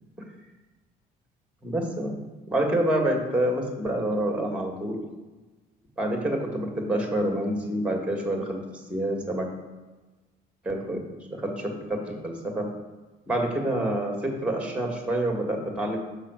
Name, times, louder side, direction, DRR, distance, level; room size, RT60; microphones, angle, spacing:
voice 1, 1.6-2.2 2.5-5.0 6.0-8.6 8.9-9.5 10.6-11.0 11.3-12.7 13.3-16.0, right 1 dB, 5° right, 1 dB, 1.7 m, -27 dB
6.5 x 4.0 x 6.2 m, 1.2 s
cardioid pair, 110°, 17 cm